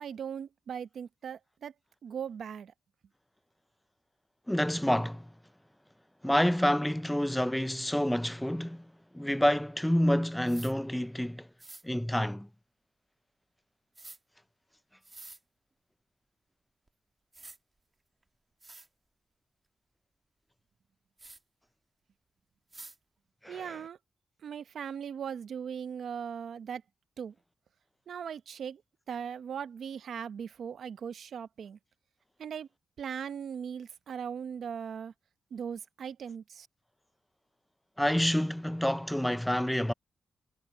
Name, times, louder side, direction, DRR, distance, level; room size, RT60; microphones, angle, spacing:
voice 1, 0.0-1.7 2.0-2.7 23.5-24.0 24.4-26.8 27.2-27.3 28.1-28.8 29.1-31.8 32.4-32.7 33.0-35.1 35.5-36.7, right 7 dB, 80° right, 0.8 m, -39 dB
voice 2, 4.5-5.3 6.2-8.8 9.1-11.5 11.8-12.5 23.4-23.8 38.0-39.9, equal, 5° left, 0.4 m, -28 dB
sound 1, 10.5-10.7 11.6-11.8 13.9-14.2 15.0-15.4 16.9-17.0 17.3-17.6 18.2-18.3 18.6-18.9 21.2-21.4 22.7-23.0, right 2 dB, 25° right, 1.4 m, -48 dB
wide cardioid pair, 125°, 0 cm